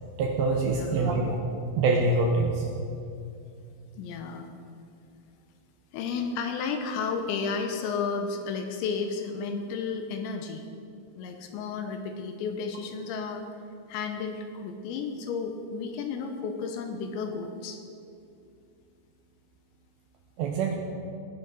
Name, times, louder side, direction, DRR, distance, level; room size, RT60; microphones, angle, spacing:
voice 1, 0.2-1.4 1.8-2.7 20.4-20.8, right 3 dB, 80° right, 1 dB, 2.5 m, -25 dB
voice 2, 0.7-1.3 4.0-4.5 5.9-10.6 11.2-13.5 13.9-17.8, left 5 dB, 80° left, 5 dB, 2.8 m, -32 dB
19.5 x 10.5 x 4.1 m, 2.5 s
omnidirectional pair, 6.0 m